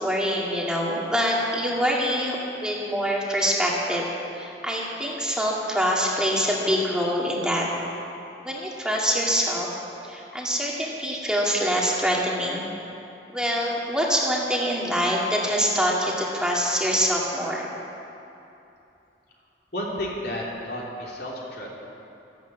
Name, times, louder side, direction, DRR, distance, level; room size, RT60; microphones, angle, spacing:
voice 1, 0.0-4.0 4.3-7.7 8.4-9.7 10.0-12.7 13.3-17.7, equal, 5° right, -3 dB, 2.1 m, -25 dB
voice 2, 19.7-21.7, left 1 dB, 65° left, -3 dB, 3.3 m, -32 dB
14.0 x 12.5 x 8.3 m, 2.8 s
head